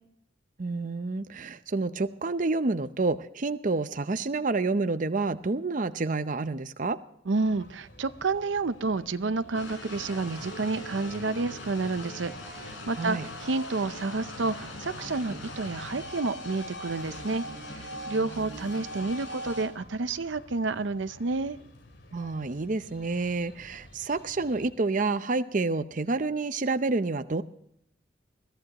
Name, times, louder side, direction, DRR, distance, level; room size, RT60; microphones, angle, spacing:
voice 1, 0.6-7.0 13.0-13.3 22.1-27.4, right 3 dB, 45° right, 11 dB, 0.6 m, -29 dB
voice 2, 7.3-17.4 17.7-21.6, right 3 dB, 80° right, 13 dB, 0.7 m, -30 dB
sound 1, 7.4-24.7, left 1 dB, 70° left, 2.9 m, -53 dB
sound 2, 9.5-19.7, left 1 dB, 90° left, 4.9 m, -40 dB
21.5 x 14.5 x 2.9 m, 0.70 s
head